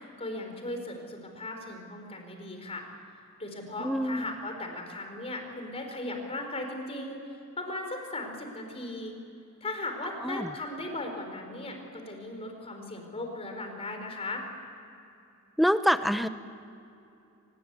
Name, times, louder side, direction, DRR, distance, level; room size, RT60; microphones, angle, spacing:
voice 1, 0.0-2.8 3.4-7.2 7.6-9.2 9.6-14.4, left 2 dB, 30° left, 4 dB, 4.3 m, -37 dB
voice 2, 3.8-4.2 10.2-10.5 15.6-16.3, equal, ahead, 11 dB, 0.8 m, -25 dB
24.5 x 21.0 x 8.3 m, 2.7 s
head